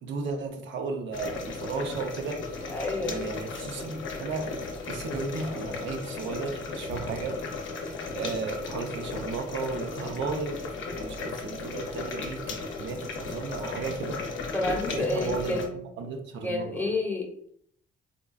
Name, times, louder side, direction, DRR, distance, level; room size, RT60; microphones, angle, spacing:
voice 1, 0.0-2.7 3.0-7.4 8.1-10.6 10.9-14.2 14.9-15.6 16.0-16.9, right 4 dB, 70° right, 4 dB, 0.5 m, -34 dB
sound 1, 1.1-15.7, left 3 dB, 70° left, 0.6 m, -36 dB
voice 2, 2.7-3.3 14.5-15.8 16.4-17.5, left 2 dB, 10° left, -1 dB, 0.8 m, -30 dB
3.7 x 2.2 x 2.2 m, 0.69 s
cardioid pair, 90°, 20 cm